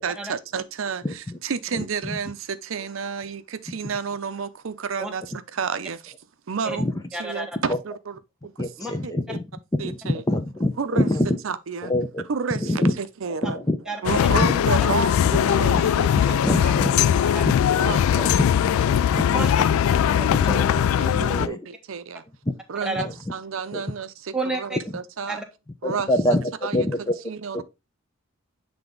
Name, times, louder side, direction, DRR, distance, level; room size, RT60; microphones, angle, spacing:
voice 1, 0.0-6.1 6.5-8.5 9.0-9.1 9.8-10.2 10.8-11.1 11.4-11.9 12.3-13.6 14.0-17.3 17.8-18.4 18.9-19.3 21.0-22.2 22.7-25.4 25.8-26.1 26.6-26.9 27.2-27.6, right 6 dB, 75° right, 0.5 m, -31 dB
voice 2, 7.1-7.6 8.8-8.9 13.9-14.0 16.6-16.7 17.3-17.4 17.9-18.0 19.3-19.5 19.9-20.6 21.1-21.3 22.8-23.0 24.3-24.8 25.3-25.4, right 2 dB, 5° right, 1.1 m, -30 dB
voice 3, 8.6-9.4 9.7-11.3 11.9-12.2 12.6-13.0 13.4-13.8 14.3-14.5 16.4-16.9 17.4-17.5 18.1-18.7 19.1-19.5 21.3-21.6 22.5-22.6 23.0-23.1 23.7-23.8 25.8-27.1 27.5-27.6, left 1 dB, 20° left, 0.6 m, -25 dB
sound 1, 14.0-21.5, left 9 dB, 90° left, 0.3 m, -20 dB
7.8 x 3.5 x 3.8 m
head